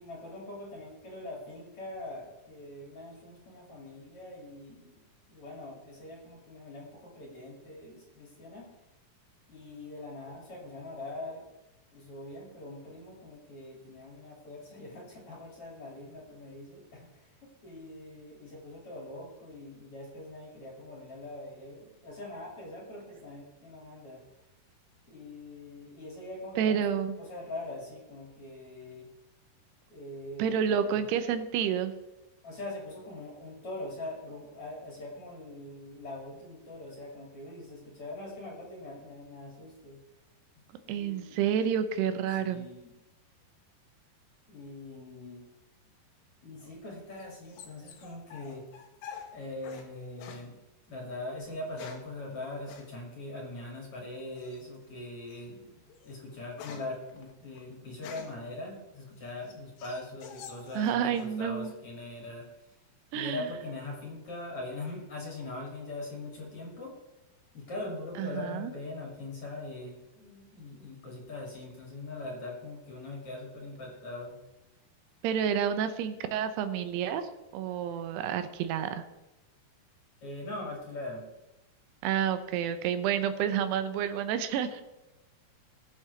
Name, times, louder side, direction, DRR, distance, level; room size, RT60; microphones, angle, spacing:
voice 1, 0.0-5.0 5.3-8.7 9.5-11.4 11.9-24.2 25.0-26.8 27.2-29.1 29.9-31.0 32.4-40.0 40.8-41.4 42.4-42.9 44.5-45.5 46.4-48.6 49.3-50.6 50.9-62.7 63.1-67.0 67.5-74.4 80.2-81.3, left 2 dB, 40° left, -1 dB, 2.7 m, -42 dB
voice 2, 26.6-27.2 30.4-31.9 40.9-42.7 60.8-61.7 63.1-63.5 68.2-68.7 75.2-79.0 82.0-84.8, right 8 dB, 85° right, 10 dB, 2.8 m, -29 dB
sound 1, 46.6-49.9 50.2-50.5 51.4-52.2 52.7-52.9 54.4-54.8 55.3-55.5 55.9-58.5 59.0-61.4 61.6-62.3, left 7 dB, 85° left, 3.3 m, -48 dB
20.5 x 7.5 x 3.3 m, 1.0 s
omnidirectional pair, 4.7 m